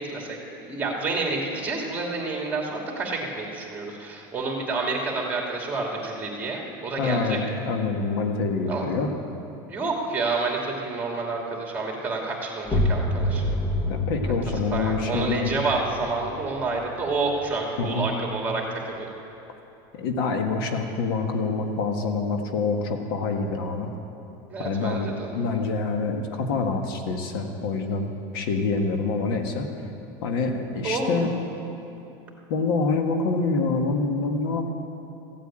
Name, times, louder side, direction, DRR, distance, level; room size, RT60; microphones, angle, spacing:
voice 1, 0.0-7.4 8.7-8.8 9.7-13.5 14.2-14.4 14.7-19.1 24.5-25.3 30.8-31.3, right 3 dB, 15° right, -1 dB, 2.7 m, -29 dB
voice 2, 7.0-9.1 13.9-15.5 17.8-18.1 19.9-23.9 24.6-28.1 28.3-29.7 30.2-31.3 32.5-34.7, left 4 dB, 80° left, 4 dB, 1.6 m, -26 dB
sound 1, 12.6-18.2, left 1 dB, 30° left, 1.2 m, -28 dB
15.0 x 8.8 x 8.8 m, 2.8 s
supercardioid pair, 140°, 12 cm